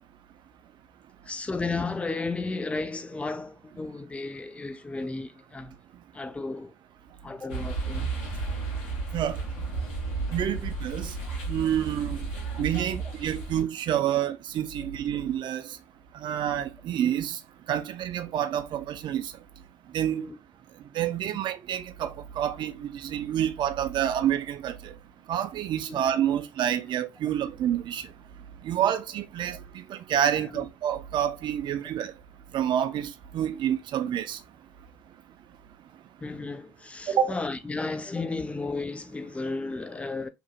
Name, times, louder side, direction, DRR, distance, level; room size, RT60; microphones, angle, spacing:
voice 1, 1.2-5.8 6.1-6.7 7.2-8.2 9.8-9.9 10.5-10.7 12.8-13.0 14.8-14.9 20.1-20.4 25.9-26.0 29.5-29.6 30.4-30.7 33.5-33.6 36.2-40.3, left 3 dB, 10° left, 0.4 m, -34 dB
sound 1, 7.5-13.6, right 4 dB, 80° left, 1.2 m, -33 dB
voice 2, 10.3-11.1 11.5-12.2 12.6-15.6 16.2-17.4 17.7-19.3 19.9-20.3 20.9-24.9 25.3-28.0 28.6-32.1 32.5-34.4 37.1-37.3, right 10 dB, 50° right, 0.4 m, -28 dB
2.9 x 2.5 x 2.3 m
hypercardioid pair, 55°, 10 cm